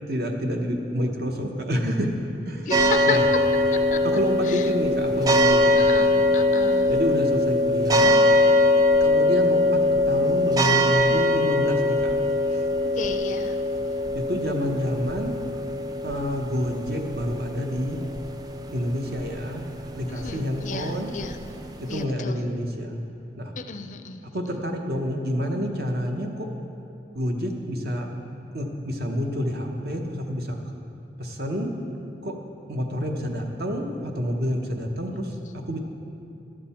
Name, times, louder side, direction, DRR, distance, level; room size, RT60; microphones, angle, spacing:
voice 1, 0.1-2.1 2.4-2.8 3.1-3.2 4.0-5.9 6.2-6.3 6.9-8.2 9.0-9.8 10.1-12.1 12.5-12.7 14.1-15.4 16.0-18.0 18.7-21.1 21.9-23.0 23.4-23.5 24.3-26.5 27.1-28.1 28.5-30.6 31.2-31.7 32.2-32.3 32.7-35.3 35.7-35.8, equal, 60° right, 3 dB, 0.9 m, -28 dB
voice 2, 2.7-3.2 3.9-4.0 4.5-4.7 5.8-6.9 13.0-13.6 20.1-21.4 21.9-22.4 23.6-24.2 35.1-35.3, left 5 dB, 45° left, 8 dB, 0.4 m, -33 dB
sound 1, 2.7-22.0, left 1 dB, 20° right, 0.3 m, -22 dB
12.0 x 7.6 x 4.3 m, 2.8 s
head